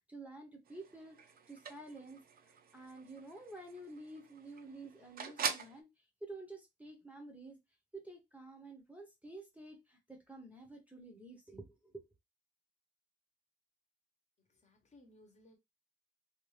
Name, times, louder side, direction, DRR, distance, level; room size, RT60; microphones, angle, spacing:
voice 1, 0.1-1.2 1.5-7.6 7.9-12.0, right 2 dB, 10° right, 0.7 m, -50 dB
sound 1, 0.7-5.8, right 6 dB, 60° right, 0.5 m, -44 dB
voice 2, 14.5-15.6, left 1 dB, 40° left, 1.0 m, -62 dB
2.6 x 2.3 x 3.1 m
cardioid pair, 115°, 17 cm